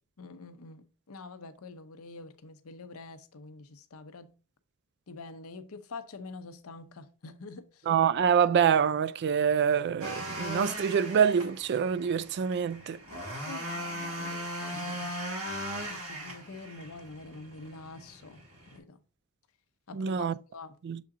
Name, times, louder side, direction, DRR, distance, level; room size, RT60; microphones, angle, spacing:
voice 1, 0.2-4.3 5.1-7.9 13.5-15.1 15.9-18.4 18.7-19.0 19.9-20.8, left 3 dB, 70° left, 0.7 m, -46 dB
voice 2, 7.9-13.0 19.9-20.3 20.8-21.0, right 7 dB, 50° right, 0.3 m, -26 dB
sound 1, 10.0-18.8, equal, 65° right, 2.3 m, -39 dB
6.9 x 3.8 x 3.6 m
head